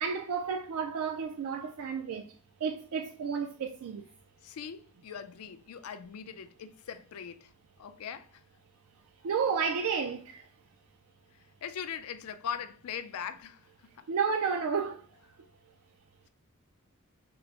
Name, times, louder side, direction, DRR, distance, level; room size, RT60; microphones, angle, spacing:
voice 1, 0.0-2.3 2.6-4.0 9.2-10.5 14.1-15.1, right 6 dB, 80° right, 0.3 m, -31 dB
voice 2, 4.4-7.5 7.8-8.4 11.3-14.1, left 8 dB, 90° left, 0.4 m, -41 dB
3.8 x 2.0 x 4.4 m
head